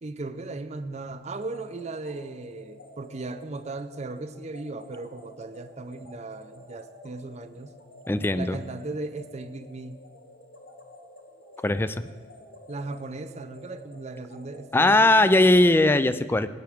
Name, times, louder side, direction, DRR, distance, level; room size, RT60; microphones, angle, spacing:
voice 1, 0.0-7.8 8.3-10.0 12.7-15.3, right 3 dB, 40° right, 10 dB, 0.5 m, -37 dB
sound 1, 1.4-16.0, left 1 dB, 90° left, 1.9 m, -50 dB
voice 2, 8.1-8.6 11.6-12.0 14.7-16.5, left 2 dB, 10° left, 13 dB, 0.3 m, -19 dB
18.0 x 9.0 x 3.5 m, 1.5 s
head